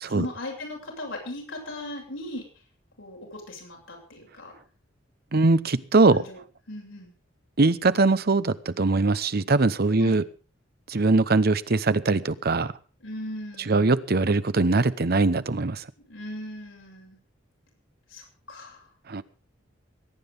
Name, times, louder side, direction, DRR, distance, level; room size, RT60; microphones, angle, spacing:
voice 1, 0.1-2.4 3.0-4.5 6.1-6.4 6.7-7.1 10.0-10.2 13.0-13.9 16.1-17.2 18.1-18.9, left 1 dB, 80° left, 0 dB, 7.6 m, -38 dB
voice 2, 5.3-6.2 7.6-10.2 10.9-12.7 13.7-15.9 19.1-19.2, right 3 dB, 55° right, 14 dB, 0.9 m, -21 dB
22.0 x 10.0 x 5.3 m, 0.37 s
head